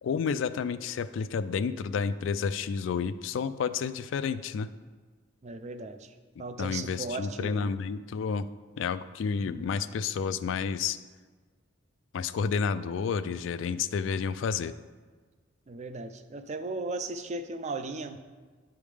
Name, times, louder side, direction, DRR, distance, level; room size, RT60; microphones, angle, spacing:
voice 1, 0.0-4.7 6.4-8.5 8.8-11.0 12.1-14.7, left 6 dB, 65° left, 13 dB, 0.3 m, -30 dB
voice 2, 5.4-7.7 9.4-9.8 15.7-18.2, right 3 dB, 35° right, 9 dB, 0.4 m, -37 dB
10.0 x 3.5 x 4.9 m, 1.4 s
head